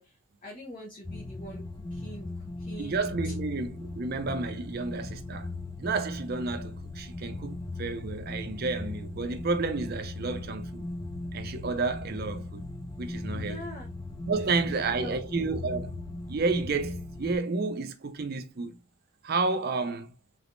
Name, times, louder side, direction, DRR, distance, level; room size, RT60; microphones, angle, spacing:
voice 1, 0.0-3.3 13.3-13.9 14.6-15.6, left 1 dB, 35° left, 0.8 m, -45 dB
sound 1, 1.0-17.4, left 2 dB, 15° left, 0.3 m, -38 dB
voice 2, 2.8-5.5 5.8-10.8 11.3-12.7 13.0-13.7 14.3-15.9 16.3-18.7 19.2-20.1, right 3 dB, 45° right, 0.5 m, -31 dB
3.4 x 3.4 x 2.5 m
head